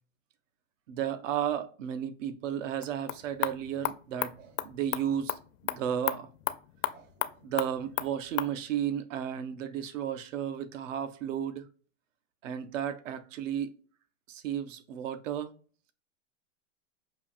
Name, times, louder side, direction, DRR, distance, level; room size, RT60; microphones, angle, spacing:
voice 1, 0.9-6.3 6.9-7.1 7.4-11.7 12.4-13.7 14.3-15.5, right 9 dB, 70° right, 0.7 m, -33 dB
sound 1, 2.7-8.6, left 14 dB, 65° left, 0.6 m, -36 dB
5.6 x 2.5 x 2.5 m
hypercardioid pair, 120°, 40 cm